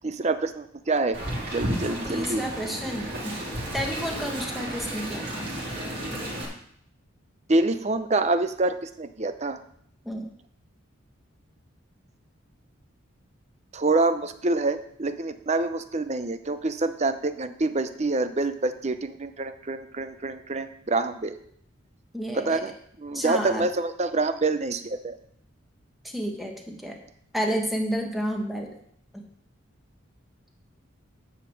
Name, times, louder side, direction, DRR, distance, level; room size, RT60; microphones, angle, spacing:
voice 1, 0.0-1.2 1.5-2.5 7.5-9.6 13.7-21.4 22.3-25.2, right 2 dB, 30° right, 10 dB, 0.6 m, -26 dB
Wind, 1.1-6.4, right 1 dB, 50° right, 3.4 m, -33 dB
voice 2, 2.0-3.3 3.7-5.5 10.0-10.3 22.1-22.6 23.1-23.6 26.0-27.0 27.3-28.7 29.1-29.3, equal, ahead, 1 dB, 1.3 m, -31 dB
10.5 x 5.1 x 7.1 m, 0.67 s
head